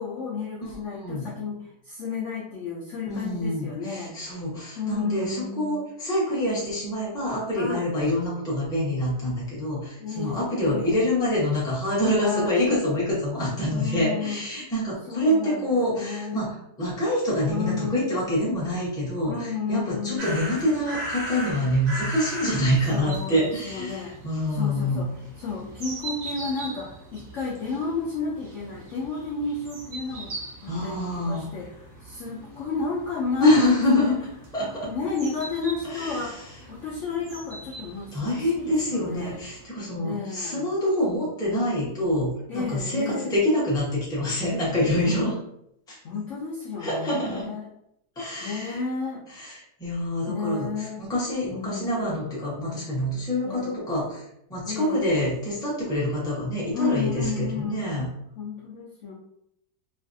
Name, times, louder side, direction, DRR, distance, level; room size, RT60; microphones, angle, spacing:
voice 1, 0.0-4.1 4.8-5.8 7.6-7.9 10.0-11.0 12.2-12.7 13.7-14.4 15.1-16.5 17.5-18.0 19.2-20.5 22.9-24.1 24.5-25.1 25.4-34.1 34.9-38.2 38.5-39.4 40.0-40.7 42.5-43.3 45.0-45.2 46.0-47.7 48.4-49.2 50.3-51.0 51.5-52.2 53.4-53.8 54.7-55.3 56.7-57.8 58.4-59.1, left 4 dB, 65° left, -5 dB, 0.7 m, -32 dB
voice 2, 0.6-1.3 3.1-25.0 30.7-31.5 33.4-34.2 34.5-34.9 35.8-36.5 38.1-45.3 45.9-46.0 46.8-47.5 48.2-48.8 49.3-58.1, left 1 dB, 5° left, -7 dB, 0.6 m, -26 dB
sound 1, 20.2-39.6, right 1 dB, 45° right, 0.5 m, -40 dB
3.1 x 2.5 x 2.6 m, 0.76 s
omnidirectional pair, 1.8 m